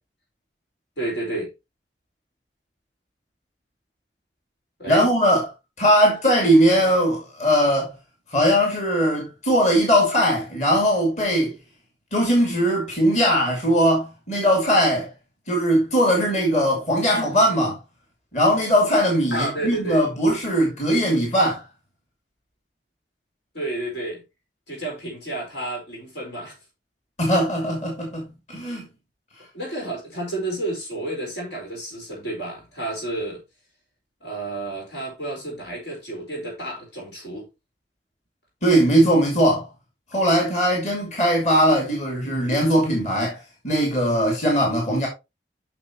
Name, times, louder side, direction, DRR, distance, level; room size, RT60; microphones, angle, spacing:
voice 1, 1.0-1.5 4.8-5.1 6.7-6.9 19.3-20.0 23.5-24.2 24.7-26.5 29.5-33.4 34.2-37.4, right 1 dB, 80° left, 4.7 m, -31 dB
voice 2, 4.9-5.5 5.8-7.9 8.3-11.5 12.1-15.1 15.5-17.8 18.3-21.6 27.2-28.9 38.6-39.7 40.1-43.4 43.6-45.1, equal, 40° left, 2.7 m, -20 dB
9.0 x 6.2 x 3.0 m
head